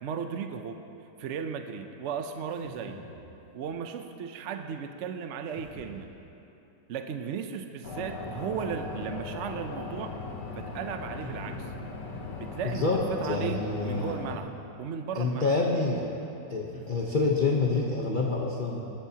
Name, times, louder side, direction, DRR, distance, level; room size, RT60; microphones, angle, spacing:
voice 1, 0.0-0.8 1.2-3.0 3.5-6.1 6.9-10.2 10.5-11.7 12.3-14.5 14.8-15.6, right 7 dB, 70° right, 6 dB, 0.7 m, -36 dB
sound 1, 2.5-3.4 5.5-6.1 8.3-9.1 11.2-12.1 13.9-14.9 16.7-17.5, right 1 dB, 5° right, 2.1 m, -47 dB
sound 2, 7.8-14.4, left 3 dB, 75° left, 1.7 m, -38 dB
voice 2, 12.6-14.2 15.1-16.1 16.5-18.9, left 3 dB, 40° left, -2 dB, 0.8 m, -27 dB
20.0 x 13.0 x 2.8 m, 2.9 s
omnidirectional pair, 1.9 m